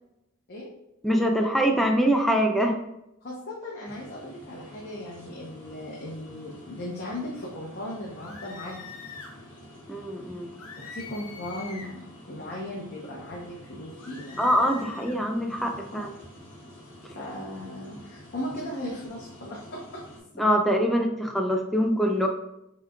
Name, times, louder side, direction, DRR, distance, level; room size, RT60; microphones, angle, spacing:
voice 1, 1.0-2.8 9.9-10.6 14.4-16.1 20.4-22.3, equal, ahead, 2 dB, 0.3 m, -24 dB
voice 2, 3.2-8.8 10.8-14.5 15.9-16.0 17.1-20.0, left 1 dB, 50° left, -4 dB, 0.7 m, -37 dB
sound 1, 3.8-20.2, left 1 dB, 20° left, 1.5 m, -48 dB
sound 2, 8.2-9.4 10.6-12.0 14.0-15.2, left 5 dB, 85° left, 0.8 m, -44 dB
5.8 x 3.0 x 2.2 m, 0.87 s
head